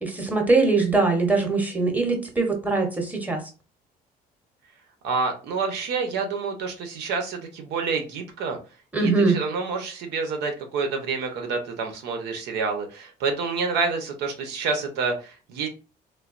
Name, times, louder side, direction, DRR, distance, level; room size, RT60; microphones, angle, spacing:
voice 1, 0.0-3.4 8.9-9.4, right 3 dB, 10° right, 2 dB, 0.9 m, -22 dB
voice 2, 5.0-8.6 9.0-15.7, right 4 dB, 80° right, 4 dB, 0.8 m, -28 dB
3.2 x 2.2 x 2.4 m, 0.34 s
cardioid pair, 110°, 17 cm